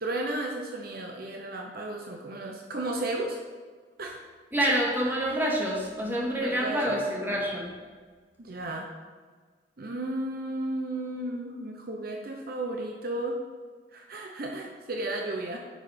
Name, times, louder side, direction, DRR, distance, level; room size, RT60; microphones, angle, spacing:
voice 1, 0.0-3.4 4.0-4.2 6.4-7.0 8.4-8.9 9.8-13.4 13.9-15.6, right 1 dB, 55° right, 2 dB, 0.9 m, -33 dB
voice 2, 4.5-7.7, equal, 10° right, -3 dB, 1.9 m, -27 dB
9.8 x 6.3 x 5.2 m, 1.5 s
head